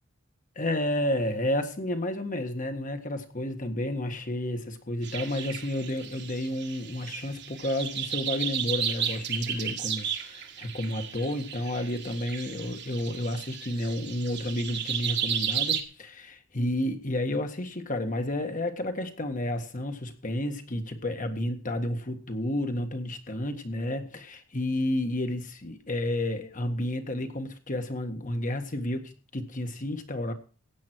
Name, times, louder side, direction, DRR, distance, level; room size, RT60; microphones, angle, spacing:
voice 1, 0.6-30.3, left 1 dB, 40° left, 7 dB, 1.7 m, -31 dB
sound 1, 5.0-15.8, right 8 dB, 55° right, 1.8 m, -34 dB
16.0 x 9.3 x 4.6 m, 0.37 s
head